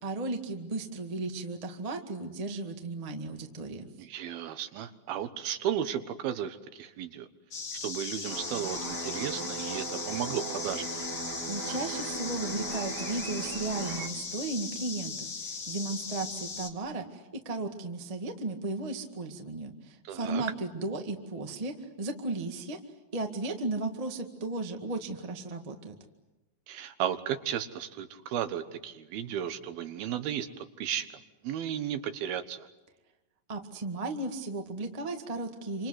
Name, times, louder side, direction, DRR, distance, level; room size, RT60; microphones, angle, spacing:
voice 1, 0.0-3.9 11.5-22.8 23.1-25.9 33.5-35.9, right 2 dB, 25° right, 4 dB, 0.8 m, -35 dB
voice 2, 4.0-7.3 7.8-10.9 20.1-20.4 26.7-30.5 30.8-31.1 31.4-32.7, right 10 dB, 85° right, 10 dB, 3.2 m, -34 dB
sound 1, 7.5-16.7, left 4 dB, 40° left, 2.1 m, -38 dB
sound 2, 8.3-14.1, right 4 dB, 45° right, 1.4 m, -38 dB
27.5 x 26.0 x 8.1 m, 1.0 s
omnidirectional pair, 4.3 m